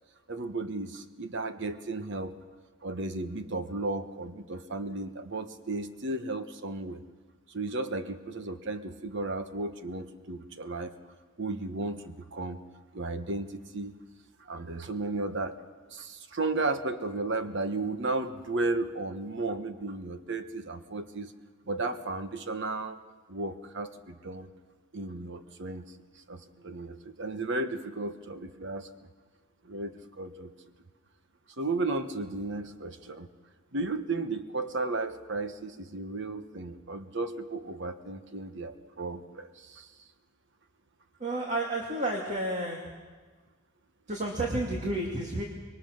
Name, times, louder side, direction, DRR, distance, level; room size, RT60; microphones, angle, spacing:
voice 1, 0.3-2.3 2.8-7.0 7.5-10.9 11.4-12.6 12.9-13.9 14.4-15.6 15.9-21.3 21.7-23.0 23.3-24.5 24.9-25.8 26.1-29.1 29.6-30.5 31.6-33.3 33.7-39.9, right 2 dB, 60° right, 9 dB, 1.2 m, -34 dB
voice 2, 41.2-42.8 44.1-45.4, right 1 dB, 35° right, 0 dB, 2.2 m, -31 dB
25.0 x 21.5 x 6.5 m, 1.4 s
head